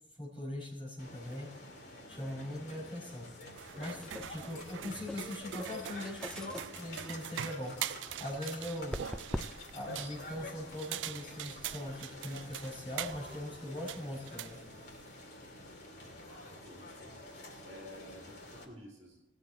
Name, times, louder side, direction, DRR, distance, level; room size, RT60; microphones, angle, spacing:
voice 1, 0.2-1.5 2.1-3.3 3.8-4.0 4.3-7.7 8.2-9.0 9.7-14.6, left 1 dB, 25° left, -3 dB, 5.0 m, -41 dB
sound 1, 1.0-18.7, left 2 dB, 55° left, 2.7 m, -49 dB
sound 2, 3.5-15.1, right 11 dB, 75° right, 0.4 m, -44 dB
sound 3, 3.7-9.8, left 1 dB, 5° left, 0.3 m, -45 dB
voice 2, 3.7-4.2 16.7-17.2 17.6-19.2, equal, 35° right, -2 dB, 2.7 m, -52 dB
19.5 x 8.0 x 4.4 m, 0.98 s
head